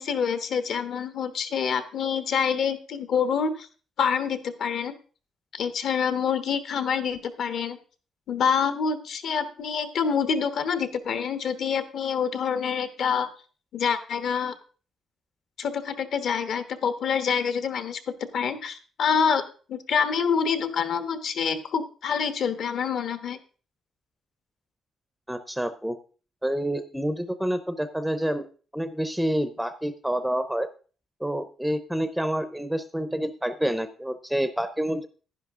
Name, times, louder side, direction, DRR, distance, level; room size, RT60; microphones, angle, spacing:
voice 1, 0.0-3.7 4.0-4.9 5.5-7.8 8.3-13.3 13.7-14.5 15.6-18.0 18.3-19.4 19.7-23.4, left 6 dB, 55° left, 10 dB, 1.1 m, -26 dB
voice 2, 25.3-26.0 26.4-28.5 28.7-30.7 31.2-35.1, right 1 dB, ahead, 11 dB, 0.6 m, -28 dB
11.0 x 10.5 x 3.6 m, 0.39 s
cardioid pair, 170°, 0 cm